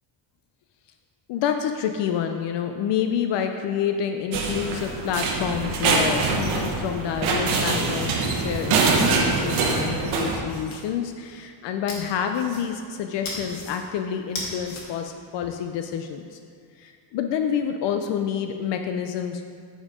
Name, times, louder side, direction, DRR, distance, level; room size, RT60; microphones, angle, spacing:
voice 1, 1.3-16.4 16.8-19.4, left 8 dB, 65° left, 6 dB, 0.5 m, -28 dB
sound 1, 4.3-10.4, right 4 dB, 90° right, 1.2 m, -24 dB
sound 2, 7.2-9.5 10.0-10.9 11.9-12.9 13.2-13.8 14.2-14.8, left 2 dB, 90° left, 2.0 m, -39 dB
9.0 x 4.4 x 4.9 m, 2.2 s
cardioid pair, 175°, 47 cm